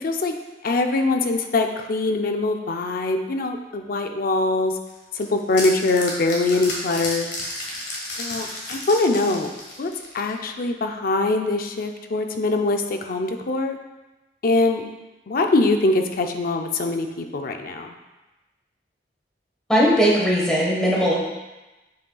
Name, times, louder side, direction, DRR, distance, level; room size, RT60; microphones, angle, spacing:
voice 1, 0.0-0.3 0.6-4.7 5.2-7.3 8.2-9.5 9.8-13.8 14.4-14.8 15.3-17.9, left 2 dB, 55° left, 5 dB, 0.5 m, -23 dB
sound 1, 4.9-10.4, left 2 dB, 70° left, 1.6 m, -32 dB
voice 2, 19.7-21.1, equal, 5° left, -5 dB, 1.3 m, -18 dB
7.9 x 5.3 x 2.3 m, 1.1 s
head